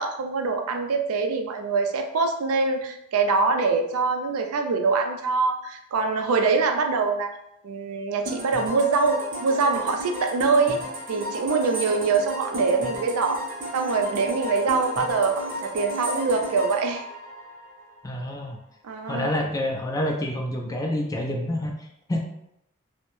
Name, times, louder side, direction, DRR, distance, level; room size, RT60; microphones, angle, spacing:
voice 1, 0.0-7.3 7.6-10.8 11.1-13.4 13.7-17.1 18.8-19.3, right 4 dB, 80° right, 4 dB, 0.4 m, -24 dB
sound 1, 8.3-18.0, equal, 40° right, 0.7 m, -33 dB
voice 2, 18.0-18.6 19.1-21.7 22.1-22.2, left 1 dB, 15° left, 1 dB, 0.3 m, -27 dB
2.6 x 2.1 x 3.0 m, 0.80 s
head